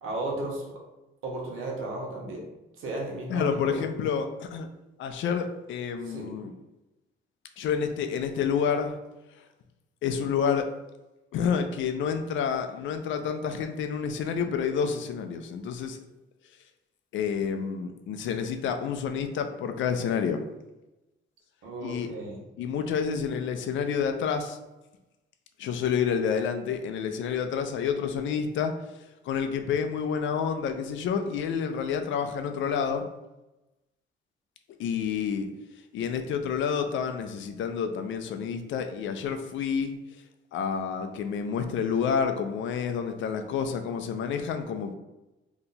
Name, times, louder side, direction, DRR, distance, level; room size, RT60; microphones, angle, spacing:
voice 1, 0.0-0.6 1.2-2.5 2.8-3.8 6.0-6.4 21.6-22.4, right 2 dB, 85° right, -3 dB, 1.1 m, -34 dB
voice 2, 3.3-4.7 5.0-6.5 7.6-8.9 10.0-10.6 11.3-16.0 17.1-20.4 21.8-22.1 22.6-24.6 25.6-28.7 29.3-33.0 34.8-35.5 35.9-40.0 40.5-44.9, left 7 dB, 70° left, 7 dB, 0.4 m, -29 dB
2.8 x 2.2 x 4.0 m, 1.0 s
cardioid pair, 170°, 21 cm